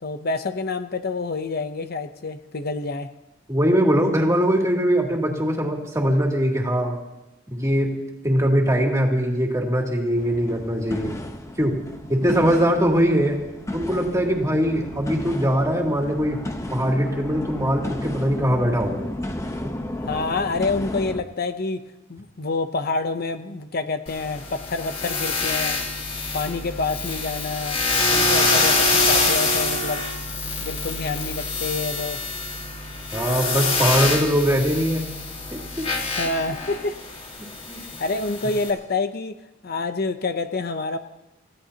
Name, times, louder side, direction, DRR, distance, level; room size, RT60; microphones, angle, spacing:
voice 1, 0.0-3.1 20.0-21.8 22.1-25.8 26.3-27.8 28.1-30.0 30.6-32.2 36.1-37.0 37.8-39.4 39.6-41.0, left 3 dB, 50° left, 8 dB, 0.7 m, -27 dB
voice 2, 3.5-7.0 7.5-7.9 8.2-11.1 11.6-11.7 12.1-13.4 13.7-16.4 16.7-19.0 33.1-35.0 35.8-35.9 37.7-37.8, equal, 15° right, -1 dB, 2.7 m, -21 dB
sound 1, 10.2-21.2, left 1 dB, 15° left, 1.0 m, -33 dB
sound 2, 24.1-38.7, left 3 dB, 35° left, 3.8 m, -25 dB
29.5 x 16.0 x 2.9 m, 0.99 s
head